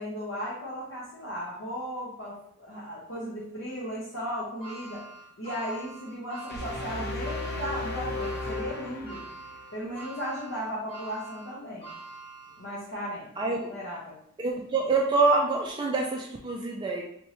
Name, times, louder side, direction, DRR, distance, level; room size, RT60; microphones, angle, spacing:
voice 1, 0.0-5.0 5.4-9.2 9.7-11.9 12.6-13.3 13.7-14.2, equal, 85° left, -9 dB, 1.0 m, -36 dB
sound 1, 4.6-13.0 13.5-13.6 14.7-14.8, right 3 dB, 25° left, 1.2 m, -45 dB
sound 2, 6.5-9.7, left 2 dB, 55° left, 0.7 m, -34 dB
voice 2, 13.4-13.7 14.4-17.0, right 3 dB, 20° right, 0 dB, 0.3 m, -26 dB
3.5 x 3.2 x 3.0 m, 0.70 s
head